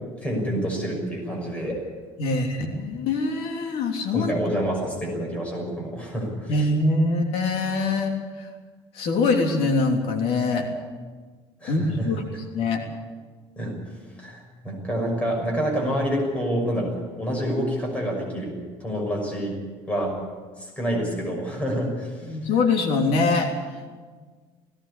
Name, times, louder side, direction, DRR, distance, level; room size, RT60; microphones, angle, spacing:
voice 1, 0.2-1.7 4.1-6.7 11.6-12.2 13.6-13.8 14.2-19.6 19.9-20.2 20.6-22.3, equal, 10° left, 0 dB, 6.1 m, -28 dB
voice 2, 2.2-4.3 6.5-8.5 8.9-10.7 11.7-12.2 12.5-12.8 22.3-23.5, left 3 dB, 65° left, 2 dB, 3.2 m, -23 dB
18.5 x 17.5 x 8.6 m, 1.5 s
cardioid pair, 155°, 11 cm